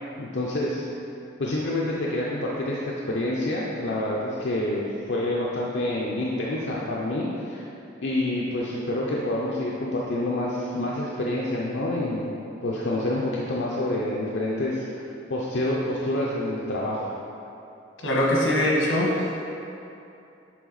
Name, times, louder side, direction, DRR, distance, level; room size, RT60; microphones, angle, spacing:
voice 1, 0.2-0.8 1.4-7.6 8.0-12.3 12.6-15.0 15.3-17.0, left 1 dB, 65° left, -5 dB, 0.6 m, -27 dB
voice 2, 18.0-19.3, left 1 dB, 85° left, -3 dB, 1.4 m, -22 dB
7.6 x 3.6 x 4.0 m, 2.7 s
head